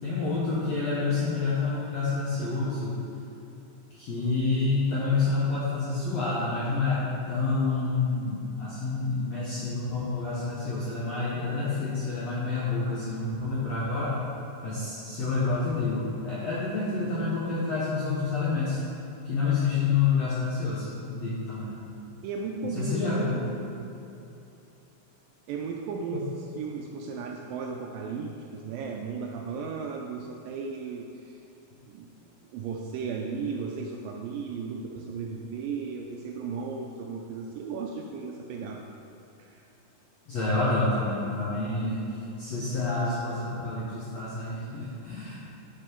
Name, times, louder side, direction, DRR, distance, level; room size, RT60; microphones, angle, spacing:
voice 1, 0.0-3.0 3.9-14.2 14.6-18.8 19.2-21.7 22.6-23.5 40.3-45.4, left 3 dB, 75° left, -7 dB, 1.5 m, -28 dB
voice 2, 22.2-23.0 25.5-26.3 26.6-31.4 31.9-32.1 32.5-38.8 39.4-39.7, right 5 dB, 85° right, 1 dB, 2.0 m, -35 dB
9.8 x 5.0 x 4.4 m, 2.7 s
omnidirectional pair, 4.4 m